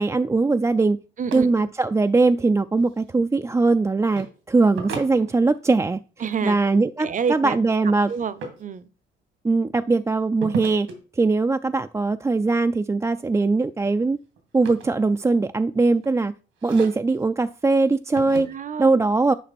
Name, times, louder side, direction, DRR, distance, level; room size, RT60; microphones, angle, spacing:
voice 1, 0.0-1.0 1.3-6.0 6.4-8.1 9.4-10.9 11.1-14.2 14.5-16.3 16.6-18.5 18.8-19.3, right 3 dB, 15° right, 0.3 m, -21 dB
voice 2, 1.2-1.7 6.2-6.6 7.0-7.6 8.1-8.9 18.5-19.1, right 6 dB, 40° right, 0.7 m, -28 dB
sound 1, 1.2-1.4 2.7-3.3 4.1-4.3 4.7-5.8 8.0-8.6 10.4-11.0 12.9-13.2 13.6-15.5 15.9-16.2 16.6-17.2 18.2-18.4, right 5 dB, 90° right, 2.3 m, -36 dB
10.0 x 5.2 x 4.2 m
cardioid pair, 90°, 20 cm